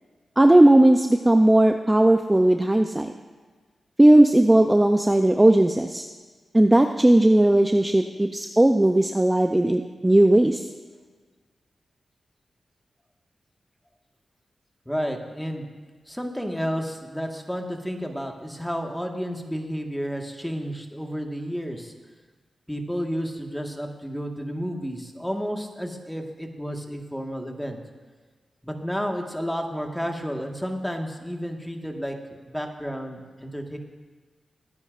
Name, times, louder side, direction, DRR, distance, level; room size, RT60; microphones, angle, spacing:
voice 1, 0.4-3.1 4.0-6.1 6.5-10.6, right 1 dB, 15° right, 6 dB, 0.5 m, -17 dB
voice 2, 14.8-15.7 16.1-21.9 22.7-27.8 28.6-32.2 32.5-33.8, equal, 5° left, 3 dB, 1.5 m, -31 dB
21.5 x 9.7 x 2.5 m, 1.4 s
cardioid pair, 60°, 0 cm